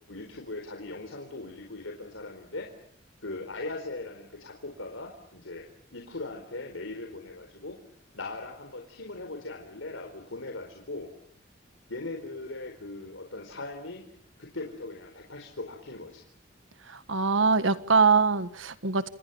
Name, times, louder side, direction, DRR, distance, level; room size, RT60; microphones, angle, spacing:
voice 1, 0.1-2.7 3.2-7.8 8.1-11.1 11.9-14.0 14.4-16.2, left 2 dB, 80° left, 2 dB, 4.4 m, -39 dB
voice 2, 16.9-19.1, right 4 dB, 75° right, 13 dB, 1.5 m, -23 dB
28.5 x 28.0 x 7.1 m, 0.65 s
head